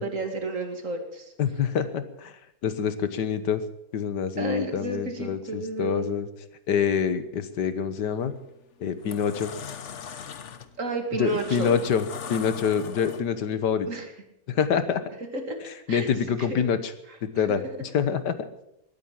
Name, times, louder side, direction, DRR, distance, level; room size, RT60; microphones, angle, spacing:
voice 1, 0.0-1.3 4.4-6.1 10.8-11.8 13.9-14.1 15.3-15.6 15.9-16.1 16.4-16.5 17.1-17.7, right 3 dB, 50° right, 5 dB, 2.5 m, -32 dB
voice 2, 1.4-2.3 2.6-3.6 3.9-6.3 6.7-8.3 8.8-9.5 11.1-12.0 12.3-13.9 14.5-15.0 15.9-16.8 17.2-18.4, left 7 dB, 75° left, 12 dB, 1.8 m, -26 dB
sound 1, 8.1-8.4 8.8-13.5, left 7 dB, 50° left, 1.1 m, -40 dB
20.0 x 9.6 x 7.5 m, 0.81 s
omnidirectional pair, 1.8 m